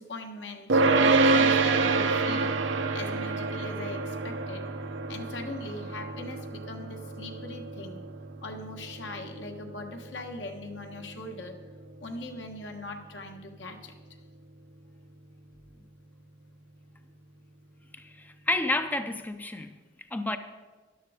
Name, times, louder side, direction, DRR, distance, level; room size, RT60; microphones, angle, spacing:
voice 1, 0.0-4.6 5.1-8.0 8.4-11.6 12.0-13.9, left 2 dB, 70° left, 4 dB, 1.4 m, -41 dB
sound 1, 0.7-12.0, right 3 dB, 90° right, 0.8 m, -28 dB
sound 2, 1.2-9.1, right 4 dB, 55° right, 1.0 m, -42 dB
voice 2, 18.0-19.7 20.1-20.4, left 2 dB, 10° left, 8 dB, 0.5 m, -30 dB
13.5 x 11.0 x 5.0 m, 1.3 s
head